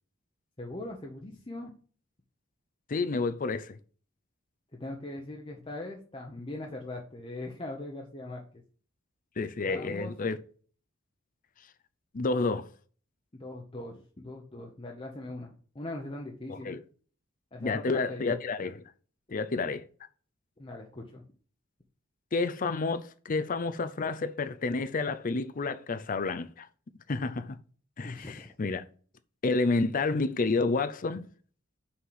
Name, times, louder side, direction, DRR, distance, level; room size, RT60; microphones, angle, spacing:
voice 1, 0.6-1.7 4.7-8.4 9.7-10.1 13.4-16.8 17.5-18.3 20.6-21.2 28.0-28.5, left 2 dB, 25° left, 0.9 m, -40 dB
voice 2, 2.9-3.8 9.4-10.4 12.1-12.7 16.5-16.8 17.6-18.8 19.3-19.8 22.3-26.7 27.1-27.6 28.0-28.8 29.4-31.3, left 3 dB, 45° left, 0.5 m, -30 dB
5.8 x 5.7 x 4.7 m
head